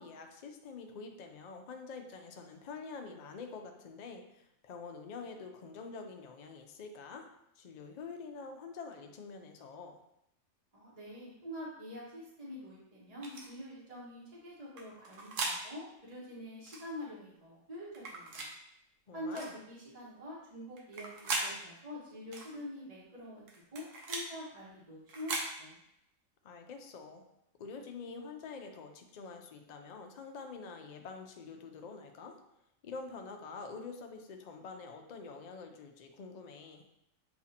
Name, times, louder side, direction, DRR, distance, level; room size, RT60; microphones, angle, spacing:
voice 1, 0.0-7.3 7.6-10.0 19.1-19.5 26.4-27.2 27.6-32.4 32.8-36.8, left 4 dB, 60° left, 4 dB, 0.4 m, -46 dB
voice 2, 10.7-18.5 19.1-23.4 23.7-25.8, left 1 dB, 30° right, -6 dB, 1.0 m, -45 dB
sound 1, 13.2-13.5 14.8-15.6 16.6-16.9 17.9-18.5 19.3-19.5 20.8-21.5 22.3-22.5 23.5-24.3 25.1-25.5, right 3 dB, 75° right, 1.1 m, -38 dB
7.0 x 2.4 x 2.8 m, 0.81 s
omnidirectional pair, 1.3 m